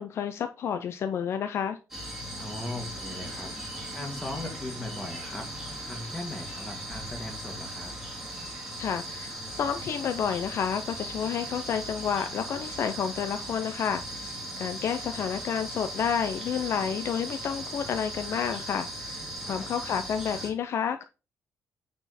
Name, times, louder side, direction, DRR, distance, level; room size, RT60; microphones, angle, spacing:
voice 1, 0.0-1.8 8.8-21.0, left 8 dB, 50° left, 8 dB, 0.6 m, -30 dB
sound 1, 1.9-20.5, right 1 dB, 5° right, 2.8 m, -38 dB
voice 2, 2.4-3.5 3.9-7.9 19.4-19.7, left 1 dB, 10° left, 2 dB, 2.0 m, -38 dB
9.0 x 4.3 x 4.2 m, 0.31 s
cardioid pair, 170°, 6 cm